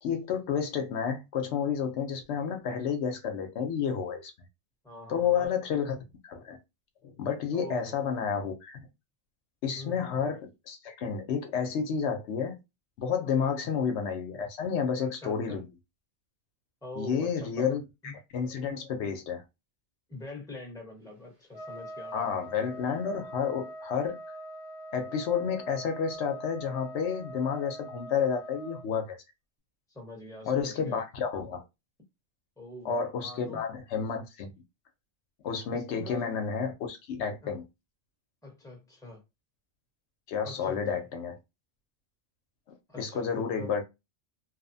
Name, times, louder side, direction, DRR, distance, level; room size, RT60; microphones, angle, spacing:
voice 1, 0.0-4.3 5.1-6.0 6.2-6.6 7.0-8.9 9.6-12.6 13.0-15.7 17.0-19.4 22.1-24.2 24.9-29.2 30.5-31.6 32.8-34.5 35.4-37.6 40.3-41.4 43.0-43.8, left 6 dB, 75° left, 0.9 m, -30 dB
voice 2, 4.8-5.5 7.5-7.9 9.7-10.0 13.4-13.7 15.0-15.6 16.8-18.1 20.1-22.3 29.9-31.0 32.6-33.6 35.7-36.2 37.4-37.5 38.4-39.2 40.4-41.0 42.9-43.7, left 2 dB, 5° left, 0.8 m, -44 dB
Trumpet, 21.5-28.8, right 1 dB, 80° right, 1.3 m, -43 dB
2.8 x 2.0 x 2.6 m
omnidirectional pair, 1.2 m